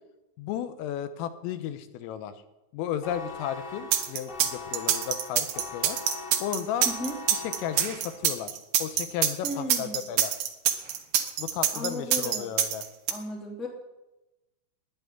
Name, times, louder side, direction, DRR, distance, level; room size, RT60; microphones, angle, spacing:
voice 1, 0.4-2.3 2.7-5.5 5.7-6.0 6.4-6.9 7.3-8.5 8.8-10.3 11.4-12.9, left 9 dB, 85° left, 10 dB, 3.4 m, -34 dB
sound 1, 3.0-8.3, left 4 dB, 55° left, 1.8 m, -41 dB
sound 2, 3.9-13.1, right 10 dB, 70° right, 2.4 m, -25 dB
voice 2, 6.8-7.1 9.4-10.1 11.7-12.5 13.1-13.7, equal, ahead, -1 dB, 1.2 m, -35 dB
11.5 x 10.5 x 9.5 m, 1.0 s
omnidirectional pair, 5.9 m